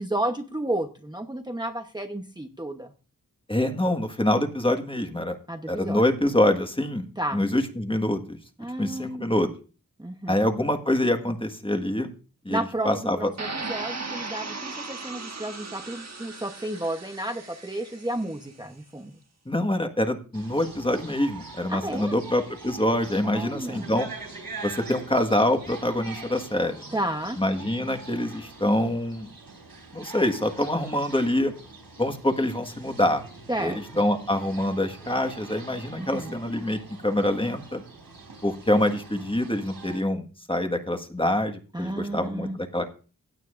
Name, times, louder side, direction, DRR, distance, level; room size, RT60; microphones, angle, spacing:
voice 1, 0.0-2.9 5.5-6.0 7.2-7.4 8.6-9.2 10.0-10.4 12.5-19.1 21.7-22.2 23.2-23.9 26.9-27.4 33.5-33.8 36.0-36.3 41.7-42.6, right 1 dB, 10° right, 4 dB, 1.0 m, -32 dB
voice 2, 3.5-5.4 5.7-7.1 7.3-8.4 8.8-9.5 10.3-12.1 12.4-13.3 19.4-24.1 24.6-26.8 27.4-29.3 29.9-31.5 32.0-33.2 33.6-37.8 38.4-42.9, left 1 dB, 15° left, 6 dB, 1.6 m, -25 dB
sound 1, 13.4-18.4, right 3 dB, 50° right, 1.4 m, -37 dB
sound 2, 20.3-40.0, right 3 dB, 80° right, 4.0 m, -44 dB
16.5 x 9.1 x 2.6 m, 0.36 s
wide cardioid pair, 55°, 35 cm